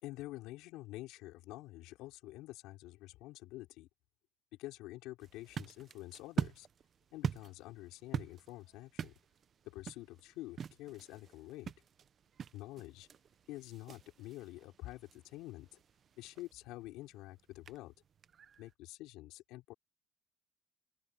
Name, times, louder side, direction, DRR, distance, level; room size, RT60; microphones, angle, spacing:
voice 1, 0.0-3.9 4.6-6.7 7.1-9.1 9.6-11.7 12.5-13.1 13.5-15.8 16.2-17.9 18.6-19.7, left 17 dB, 85° left, 3.7 m, -48 dB
sound 1, 5.2-18.7, right 7 dB, 30° right, 0.7 m, -45 dB
open air
cardioid pair, 175°, 0 cm